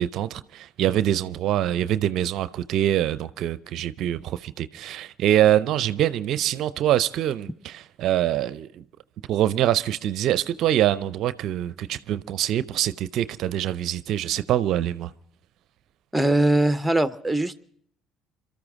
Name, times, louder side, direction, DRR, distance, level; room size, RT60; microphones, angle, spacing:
voice 1, 0.0-8.8 9.3-15.1, right 12 dB, 55° right, 0.5 m, -24 dB
voice 2, 16.1-17.6, right 1 dB, 5° right, 0.8 m, -21 dB
28.0 x 13.5 x 3.7 m
figure-of-eight pair, 55°, 0 cm